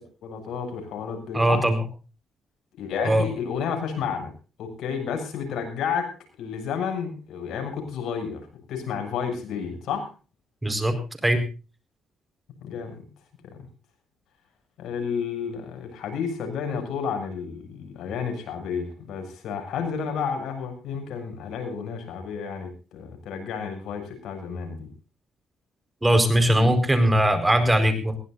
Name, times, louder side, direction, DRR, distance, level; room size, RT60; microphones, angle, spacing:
voice 1, 0.2-1.6 2.8-4.3 4.6-6.1 6.4-8.4 8.7-10.1 12.6-13.0 14.8-24.9 26.5-26.7, left 6 dB, 75° left, 5 dB, 7.0 m, -31 dB
voice 2, 1.3-1.8 3.0-3.3 10.6-11.0 11.2-11.4 26.0-28.2, right 1 dB, 10° right, 10 dB, 4.7 m, -20 dB
21.0 x 17.0 x 2.6 m, 0.34 s
cardioid pair, 90°, 0 cm